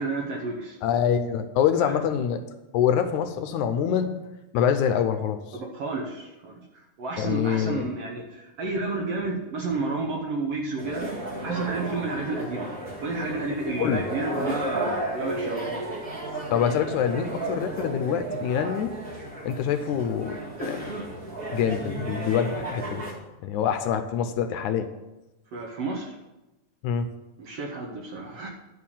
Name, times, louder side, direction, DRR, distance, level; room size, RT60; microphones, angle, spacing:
voice 1, 0.0-0.8 1.8-2.0 5.5-11.1 11.4-12.7 13.0-16.2 25.5-26.2 27.4-28.5, right 3 dB, 70° right, 1 dB, 1.5 m, -31 dB
voice 2, 0.8-2.4 2.7-4.1 4.5-5.6 7.2-7.9 13.8-14.0 16.5-19.0 19.5-20.9 21.5-23.1 23.4-24.9 26.8-27.1, left 8 dB, 80° left, 9 dB, 1.9 m, -25 dB
sound 1, 10.8-23.1, right 1 dB, 30° right, 2.2 m, -33 dB
11.0 x 4.8 x 7.0 m, 1.0 s
omnidirectional pair, 3.7 m